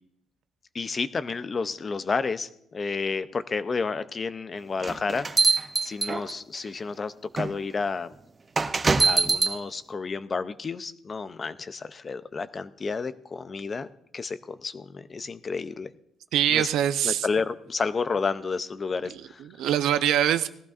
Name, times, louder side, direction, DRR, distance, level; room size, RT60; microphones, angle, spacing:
voice 1, 0.7-8.1 9.0-13.9 14.1-15.9 16.5-16.7 17.0-19.4, left 4 dB, 25° left, 13 dB, 0.4 m, -31 dB
sound 1, 4.8-6.6 7.4-7.5 8.6-9.6, right 4 dB, 20° right, 0.5 m, -23 dB
voice 2, 16.3-17.3 19.5-20.5, right 10 dB, 85° right, 11 dB, 0.6 m, -23 dB
19.5 x 14.5 x 2.5 m, 0.71 s
cardioid pair, 170°, 0 cm